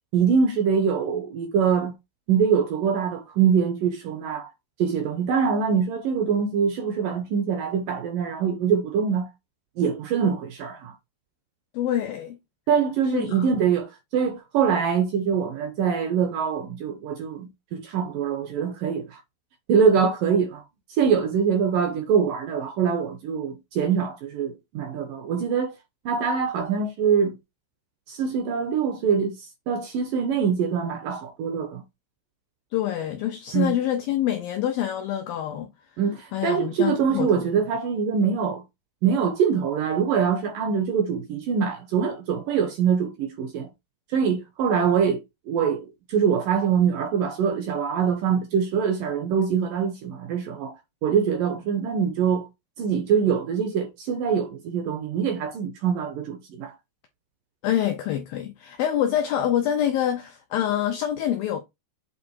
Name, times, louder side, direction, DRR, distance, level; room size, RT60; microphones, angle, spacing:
voice 1, 0.1-1.9 2.3-4.5 4.8-9.3 9.8-10.9 12.7-19.2 19.7-20.6 21.0-25.7 26.1-27.4 28.1-29.4 29.7-31.8 33.5-33.8 36.0-38.6 39.0-43.7 44.1-50.8 51.0-52.5 52.8-56.7, right 6 dB, 75° right, 2.1 m, -24 dB
voice 2, 11.7-12.4 13.1-13.5 32.7-35.7 36.3-37.5 57.6-61.6, left 11 dB, 85° left, 2.0 m, -26 dB
8.6 x 3.6 x 4.6 m
omnidirectional pair, 5.2 m